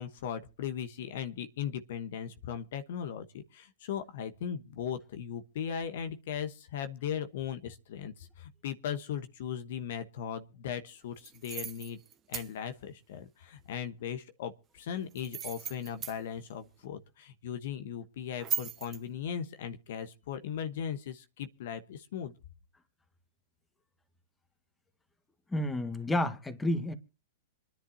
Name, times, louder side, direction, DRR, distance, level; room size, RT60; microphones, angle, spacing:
voice 1, 0.0-12.0 12.3-22.3, left 8 dB, 65° left, 1.2 m, -38 dB
sound 1, 11.2-12.5 15.1-16.2 18.4-19.0, right 9 dB, 25° right, 1.1 m, -37 dB
voice 2, 25.5-26.9, left 1 dB, 10° left, 1.7 m, -30 dB
26.5 x 10.5 x 2.8 m
hypercardioid pair, 115°, 0 cm